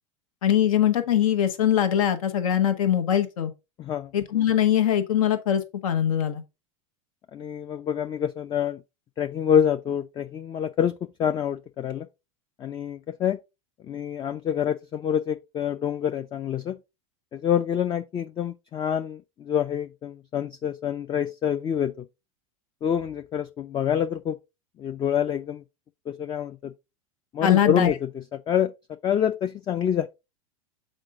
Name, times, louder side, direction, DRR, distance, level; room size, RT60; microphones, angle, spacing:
voice 1, 0.4-3.5 4.1-6.4 27.4-27.9, left 10 dB, 80° left, 1.1 m, -22 dB
voice 2, 3.8-4.1 7.3-8.8 9.2-12.1 12.6-13.4 13.9-16.8 17.3-22.0 22.8-24.4 24.8-25.6 26.1-26.7 27.3-28.1 28.5-28.7 29.0-30.1, left 9 dB, 25° left, 0.4 m, -26 dB
6.4 x 4.4 x 3.6 m
hypercardioid pair, 100°, 18 cm